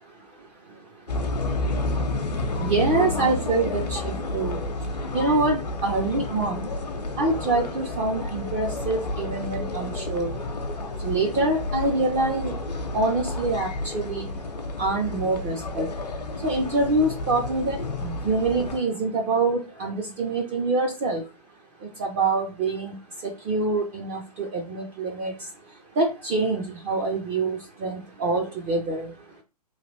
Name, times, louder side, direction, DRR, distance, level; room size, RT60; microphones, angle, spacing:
sound 1, 1.1-18.8, left 2 dB, 80° left, 0.7 m, -30 dB
voice 1, 2.6-4.6 5.1-6.7 7.2-10.3 11.0-12.5 12.9-13.7 13.9-14.3 14.8-15.9 16.4-21.2 22.0-23.0 23.5-25.3 26.0-29.1, right 3 dB, 20° right, 2 dB, 0.3 m, -25 dB
3.1 x 2.6 x 2.6 m, 0.30 s
figure-of-eight pair, 125°, 21 cm